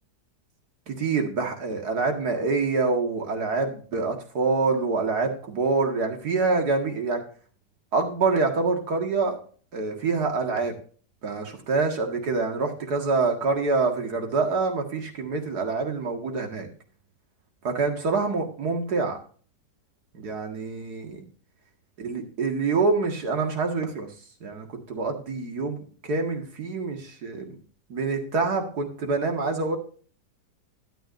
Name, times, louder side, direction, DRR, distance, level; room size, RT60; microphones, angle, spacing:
voice 1, 0.9-7.2 7.9-9.4 9.7-10.8 11.2-16.7 17.6-19.2 20.1-21.2 22.0-24.1 24.4-27.6 27.9-29.8, right 4 dB, 65° right, 3 dB, 2.4 m, -26 dB
12.5 x 10.0 x 2.6 m, 0.42 s
omnidirectional pair, 1.8 m